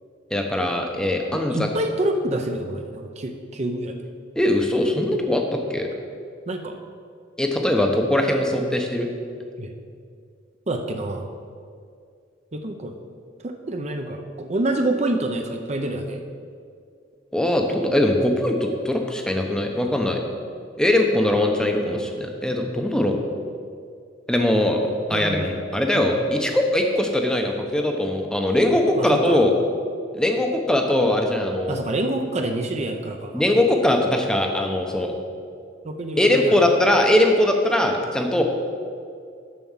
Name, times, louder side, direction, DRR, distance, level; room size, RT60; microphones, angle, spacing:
voice 1, 0.3-1.7 4.4-5.9 7.4-9.1 17.3-20.2 20.8-23.1 24.3-24.8 25.1-29.5 30.1-31.8 33.3-35.1 36.2-38.4, left 1 dB, 5° left, 3 dB, 0.7 m, -21 dB
voice 2, 1.3-3.9 6.5-6.8 9.6-9.7 10.7-11.3 12.5-12.9 13.4-16.2 25.1-25.5 29.0-29.4 31.7-33.4 35.8-36.6, right 1 dB, 35° right, 5 dB, 0.6 m, -27 dB
7.3 x 6.0 x 7.2 m, 2.3 s
head